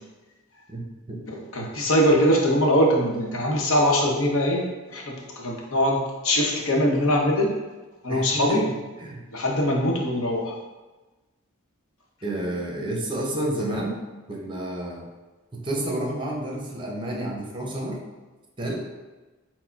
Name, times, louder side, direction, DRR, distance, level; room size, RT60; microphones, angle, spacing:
voice 1, 0.7-1.2 8.1-9.2 12.2-14.0 14.3-15.0 15.5-18.0 18.6-18.7, right 1 dB, 25° right, -1 dB, 0.7 m, -30 dB
voice 2, 1.3-7.5 8.0-8.6 9.3-10.5, equal, 75° left, -1 dB, 0.8 m, -22 dB
4.6 x 2.1 x 4.5 m, 1.2 s
head